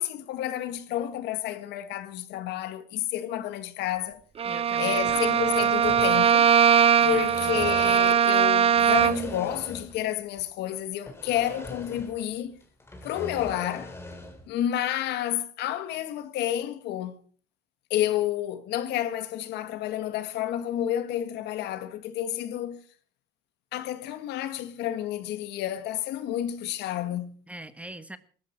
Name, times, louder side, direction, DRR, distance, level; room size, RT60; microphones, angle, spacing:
voice 1, 0.0-4.2 4.8-6.5 7.0-12.6 13.0-13.9 14.5-17.2 17.9-22.8 23.7-27.3, left 12 dB, 85° left, 1.8 m, -30 dB
voice 2, 4.4-5.3 7.0-7.7 27.5-28.2, right 1 dB, 5° right, 1.3 m, -43 dB
Bowed string instrument, 4.4-9.4, right 8 dB, 35° right, 0.7 m, -21 dB
sound 1, 4.9-6.7 7.0-8.2 8.7-10.1 10.4-10.5 11.1-12.3 12.6-14.5, left 2 dB, 15° left, 4.1 m, -41 dB
19.0 x 14.5 x 4.5 m
cardioid pair, 110°, 17 cm